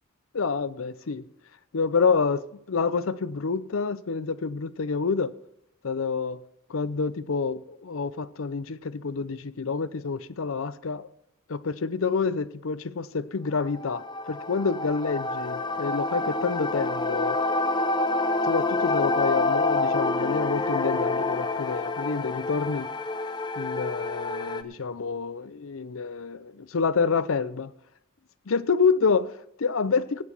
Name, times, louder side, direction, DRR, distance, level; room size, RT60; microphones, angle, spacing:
voice 1, 0.3-1.3 1.7-5.3 5.8-6.4 6.7-11.1 11.5-17.4 18.4-22.9 23.6-27.7 28.5-30.2, left 5 dB, 65° left, 0.6 m, -28 dB
sound 1, 13.7-24.6, left 2 dB, 20° left, 0.6 m, -27 dB
16.0 x 9.3 x 4.5 m
head